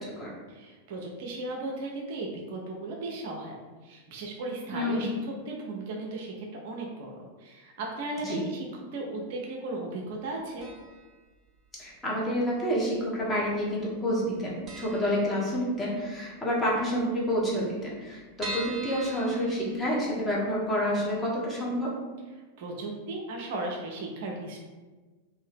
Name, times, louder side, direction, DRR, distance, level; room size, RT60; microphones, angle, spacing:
voice 1, 0.5-3.6 3.8-10.7 22.6-24.6, right 2 dB, 50° right, 0 dB, 0.5 m, -36 dB
voice 2, 4.7-5.2 8.2-8.4 11.8-21.9, equal, 15° left, -5 dB, 1.0 m, -29 dB
sound 1, 10.6-11.1 11.4-11.5 12.4-13.1 13.4-13.6 13.9-14.0 14.3-14.4 14.7-16.0 16.4-16.5 16.7-16.8 17.0-17.1 17.6-20.2 20.7-20.8 21.2-21.3, right 1 dB, 20° right, 0.8 m, -41 dB
2.7 x 2.7 x 3.4 m, 1.3 s
figure-of-eight pair, 90°, 0 cm